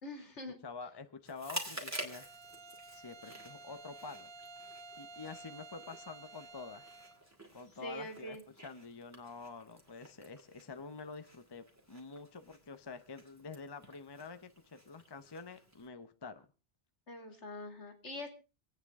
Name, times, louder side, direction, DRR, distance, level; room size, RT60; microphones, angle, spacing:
voice 1, 0.0-0.6 7.8-8.4 17.1-18.3, left 1 dB, 70° left, 5 dB, 2.8 m, -44 dB
voice 2, 0.6-2.3 2.9-4.3 5.0-6.9 7.5-16.5, left 4 dB, 25° left, 10 dB, 0.8 m, -48 dB
Chewing mastication, 1.2-15.9, right 1 dB, 15° right, 2.6 m, -50 dB
Bowed string instrument, 2.0-7.3, right 3 dB, 30° right, 0.6 m, -52 dB
27.5 x 9.2 x 3.6 m, 0.33 s
omnidirectional pair, 1.2 m